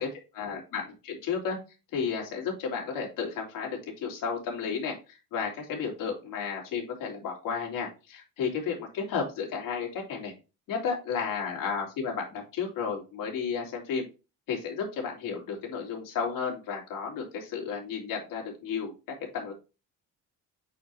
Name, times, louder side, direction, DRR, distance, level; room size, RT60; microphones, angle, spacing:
voice 1, 0.3-1.6 1.9-10.3 10.7-14.0 14.5-18.9 19.3-19.5, left 6 dB, 85° left, 0 dB, 2.9 m, -33 dB
8.4 x 4.8 x 2.9 m, 0.30 s
cardioid pair, 170°, 32 cm